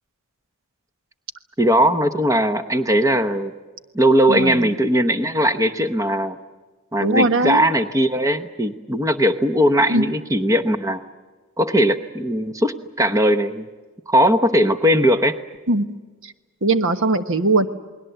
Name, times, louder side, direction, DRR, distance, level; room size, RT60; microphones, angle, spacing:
voice 1, 1.6-3.5 3.9-6.4 6.9-11.0 11.6-13.6 14.1-15.4, equal, 15° right, 10 dB, 0.9 m, -19 dB
voice 2, 4.3-4.7 7.0-7.7 9.9-10.1 15.7-15.9 16.6-17.7, right 2 dB, 65° right, 10 dB, 1.3 m, -19 dB
29.0 x 20.5 x 8.0 m, 1.3 s
head